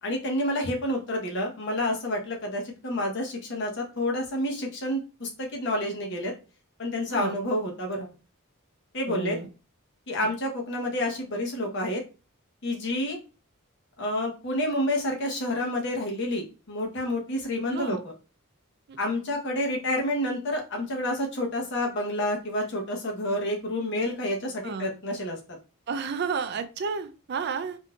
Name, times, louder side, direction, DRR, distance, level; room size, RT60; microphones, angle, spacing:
voice 1, 0.0-6.3 6.8-8.1 8.9-9.4 10.1-12.0 12.6-13.2 14.0-18.1 19.0-25.4, left 1 dB, 55° left, 1 dB, 0.9 m, -29 dB
voice 2, 9.1-9.5 17.7-18.0 18.9-19.0 24.6-24.9 25.9-27.8, right 5 dB, 50° right, 10 dB, 0.4 m, -31 dB
3.7 x 2.6 x 2.3 m, 0.33 s
head